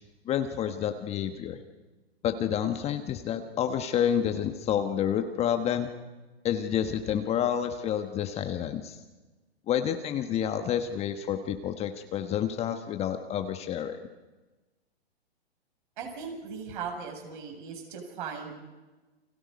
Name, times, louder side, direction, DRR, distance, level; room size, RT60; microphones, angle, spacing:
voice 1, 0.3-1.6 2.2-5.9 6.4-9.0 9.7-14.0, left 9 dB, 20° left, 7 dB, 1.2 m, -29 dB
voice 2, 16.0-18.6, right 6 dB, 50° right, 3 dB, 7.4 m, -38 dB
29.5 x 25.0 x 5.3 m, 1.2 s
hypercardioid pair, 130°, 33 cm